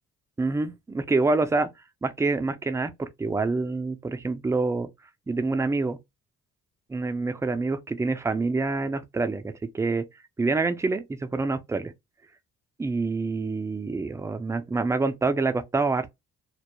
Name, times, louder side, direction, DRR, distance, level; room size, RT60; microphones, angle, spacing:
voice 1, 0.4-1.7 2.0-4.9 5.3-6.0 6.9-10.0 10.4-11.9 12.8-16.1, right 3 dB, 10° right, 0.3 m, -26 dB
2.2 x 2.0 x 2.9 m
cardioid pair, 90°, 30 cm